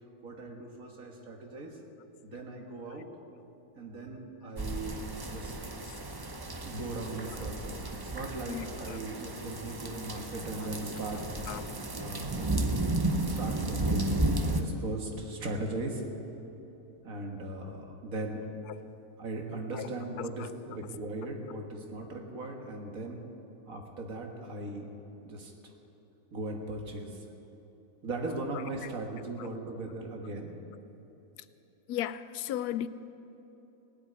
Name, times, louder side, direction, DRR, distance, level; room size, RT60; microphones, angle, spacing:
voice 1, 0.2-1.8 2.2-3.1 3.8-5.6 6.6-11.5 11.9-12.6 13.0-16.0 17.0-18.4 19.2-23.3 23.7-24.9 25.2-25.5 26.3-27.3 28.0-30.6, right 2 dB, 65° right, 2.0 m, -39 dB
sound 1, 4.6-14.6, right 2 dB, 20° right, 0.7 m, -33 dB
voice 2, 8.5-9.0 10.6-10.7 11.5-11.7 18.7-18.8 19.7-19.9 20.2-20.5 28.5-28.9 29.4-29.5 31.9-32.9, left 11 dB, 90° left, 1.1 m, -37 dB
17.0 x 8.1 x 9.8 m
omnidirectional pair, 1.6 m